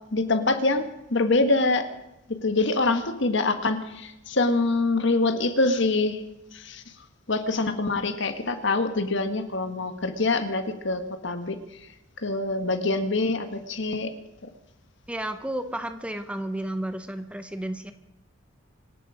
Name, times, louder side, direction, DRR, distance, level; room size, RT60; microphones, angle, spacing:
voice 1, 0.1-1.9 2.3-6.2 6.5-6.8 7.3-11.9 12.2-14.1 14.4-14.5, left 2 dB, 60° left, 8 dB, 1.6 m, -25 dB
voice 2, 15.1-17.9, right 1 dB, 5° right, 8 dB, 0.8 m, -32 dB
26.0 x 11.0 x 5.0 m, 0.91 s
head